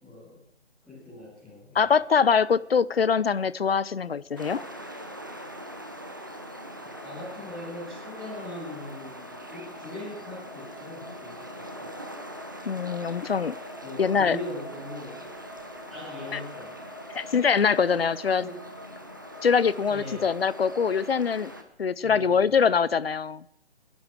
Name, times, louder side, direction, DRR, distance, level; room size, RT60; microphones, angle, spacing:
voice 1, 0.0-0.4 0.8-2.0 6.8-12.0 13.8-15.2 15.9-16.8 18.4-18.6 19.5-20.3 22.0-22.6, left 2 dB, ahead, -14 dB, 2.9 m, -41 dB
voice 2, 1.7-4.6 12.7-13.5 14.0-14.4 16.3-16.4 17.1-18.4 19.4-21.5 21.8-23.4, left 6 dB, 60° left, 20 dB, 0.6 m, -23 dB
sound 1, 4.4-21.6, equal, 20° right, 0.7 m, -43 dB
sound 2, 6.9-21.2, left 2 dB, 30° left, 1.7 m, -47 dB
23.5 x 10.5 x 4.7 m, 0.77 s
hypercardioid pair, 170°, 34 cm